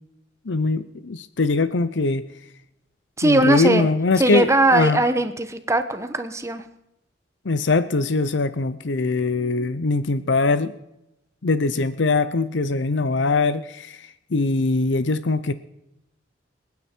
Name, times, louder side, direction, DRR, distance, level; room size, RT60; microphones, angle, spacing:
voice 1, 0.5-2.2 3.2-5.0 7.5-10.7 11.4-15.5, left 3 dB, 75° left, 13 dB, 0.7 m, -22 dB
voice 2, 3.2-3.9 4.2-6.6, right 2 dB, 15° right, 9 dB, 1.0 m, -20 dB
28.5 x 9.7 x 4.5 m, 0.89 s
head